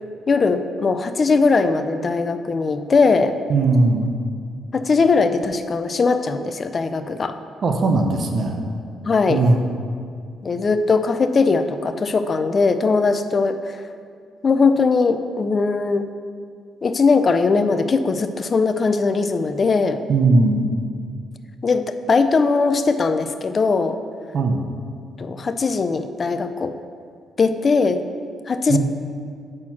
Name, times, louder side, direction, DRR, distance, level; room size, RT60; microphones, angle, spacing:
voice 1, 0.3-3.4 4.7-7.4 9.0-9.4 10.4-13.8 14.4-16.1 16.8-20.0 21.6-24.0 25.2-26.8 27.4-28.0 28.5-28.8, left 4 dB, 40° left, 9 dB, 0.4 m, -20 dB
voice 2, 3.5-4.1 7.6-8.6 9.3-9.6 20.1-20.7 24.3-24.6 28.7-28.8, right 3 dB, 50° right, 4 dB, 0.7 m, -18 dB
6.0 x 4.4 x 5.9 m, 2.2 s
cardioid pair, 90°, 0 cm